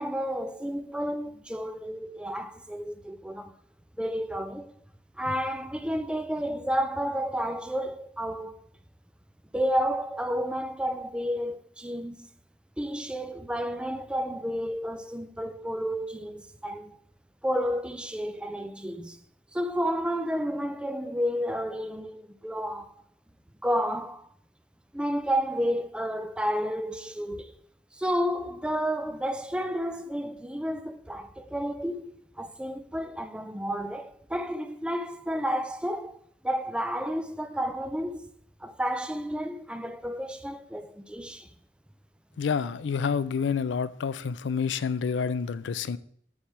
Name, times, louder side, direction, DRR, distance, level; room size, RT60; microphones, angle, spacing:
voice 1, 0.0-3.5 4.0-4.7 5.2-8.6 9.5-12.3 12.8-17.0 17.4-19.2 19.5-22.9 23.6-24.3 24.9-27.5 27.9-38.3 38.6-41.5, equal, 5° right, 0.4 m, -31 dB
voice 2, 42.4-46.0, left 6 dB, 80° left, 0.4 m, -28 dB
7.2 x 3.4 x 5.9 m
head